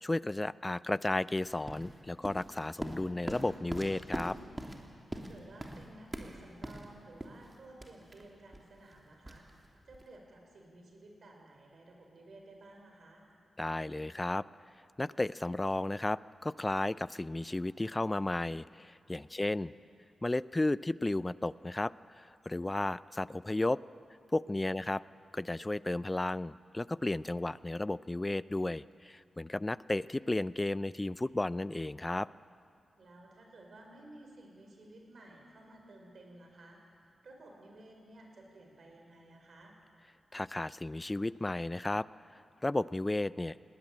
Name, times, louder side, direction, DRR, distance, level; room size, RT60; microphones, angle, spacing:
voice 1, 0.0-4.4 13.6-14.4 15.0-19.7 20.2-23.8 24.3-25.0 25.3-32.3 40.3-42.1 42.3-43.6, left 2 dB, 25° left, 18 dB, 0.5 m, -33 dB
sound 1, 1.3-10.2, right 1 dB, 20° right, 3.1 m, -43 dB
voice 2, 5.1-13.2 19.4-19.7 24.8-24.9 33.0-39.7, right 2 dB, 65° right, 1 dB, 5.3 m, -55 dB
20.0 x 18.0 x 8.8 m, 2.4 s
supercardioid pair, 45°, 0 cm